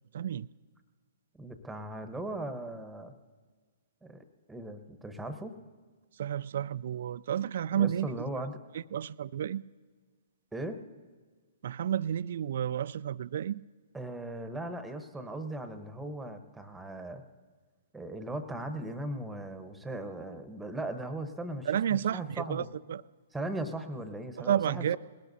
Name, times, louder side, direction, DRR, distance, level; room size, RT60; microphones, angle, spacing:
voice 1, 0.1-0.5 6.2-8.5 8.7-9.6 11.6-13.6 21.7-23.0 24.5-25.0, right 10 dB, 60° right, 19 dB, 0.3 m, -31 dB
voice 2, 1.4-3.1 4.0-5.5 7.7-8.6 10.5-10.8 13.9-17.2 17.9-22.7 23.3-25.0, right 1 dB, 5° right, 8 dB, 1.1 m, -38 dB
20.5 x 18.0 x 2.7 m, 1.5 s
hypercardioid pair, 125°, 0 cm